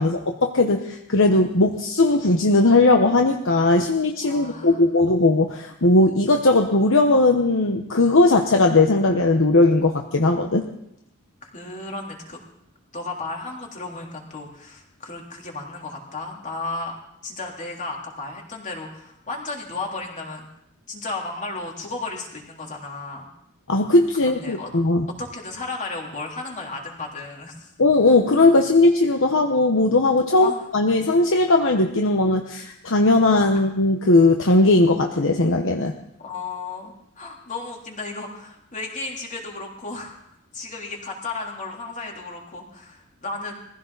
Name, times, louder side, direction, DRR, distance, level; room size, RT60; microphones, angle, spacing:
voice 1, 0.0-10.7 23.7-25.1 27.8-35.9, left 2 dB, 60° left, 3 dB, 1.1 m, -18 dB
voice 2, 4.2-5.0 11.4-12.4 12.9-17.0 17.2-20.5 20.9-23.3 24.2-24.7 25.2-27.7 30.3-30.6 33.5-33.6 36.2-40.2 40.5-43.5, left 3 dB, 35° left, -1 dB, 3.5 m, -34 dB
22.5 x 15.5 x 4.1 m, 0.77 s
head